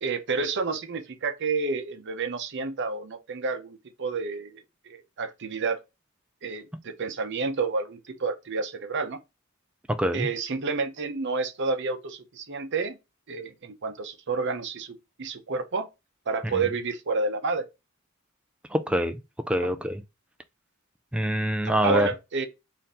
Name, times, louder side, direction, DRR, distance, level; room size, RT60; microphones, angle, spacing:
voice 1, 0.0-5.8 6.4-9.2 10.1-13.0 13.3-15.9 16.3-17.7 19.6-19.7 21.8-22.5, right 4 dB, 55° right, 0.7 m, -30 dB
voice 2, 18.7-19.2 19.5-20.0 21.1-22.1, equal, 5° right, 0.3 m, -25 dB
4.2 x 2.6 x 3.6 m
head